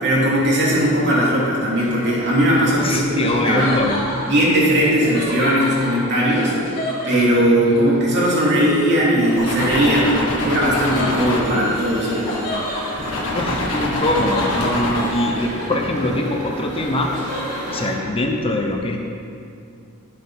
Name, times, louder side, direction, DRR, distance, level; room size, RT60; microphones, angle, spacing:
voice 1, 0.0-3.8 4.2-6.5 7.0-12.3, equal, 55° right, -6 dB, 3.0 m, -18 dB
Laughter, 1.7-7.8 9.2-16.2 16.5-17.9, left 1 dB, 45° left, 2.5 m, -32 dB
voice 2, 2.8-4.0 13.3-17.1 17.7-19.0, left 1 dB, 25° left, 2 dB, 0.8 m, -22 dB
sound 1, 9.4-12.6 13.0-15.3, left 1 dB, 90° left, 1.8 m, -26 dB
sound 2, 11.1-18.0, equal, 35° right, 1.9 m, -33 dB
11.0 x 7.7 x 5.7 m, 2.5 s
head